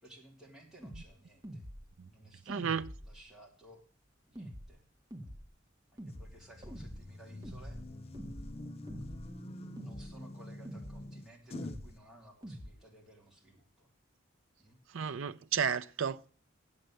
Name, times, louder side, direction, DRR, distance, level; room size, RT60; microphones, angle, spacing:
voice 1, 0.0-1.7 2.0-3.9 4.3-4.8 5.2-5.3 5.9-7.8 9.8-13.9 14.6-14.8, right 1 dB, ahead, 2.9 m, -57 dB
sound 1, 0.8-1.0 1.4-1.9 2.5-3.2 4.4-4.7 5.1-5.4 6.0-6.3 6.6-7.0 7.4-7.9 8.1-8.6 8.9-9.3 9.8-10.1 10.6-11.0 11.5-11.9 12.4-12.7, equal, 20° right, 1.4 m, -45 dB
voice 2, 2.5-2.8 14.9-16.3, right 7 dB, 75° right, 0.5 m, -32 dB
sound 2, 6.1-12.0, left 1 dB, 30° left, 0.6 m, -46 dB
8.5 x 8.0 x 7.7 m
head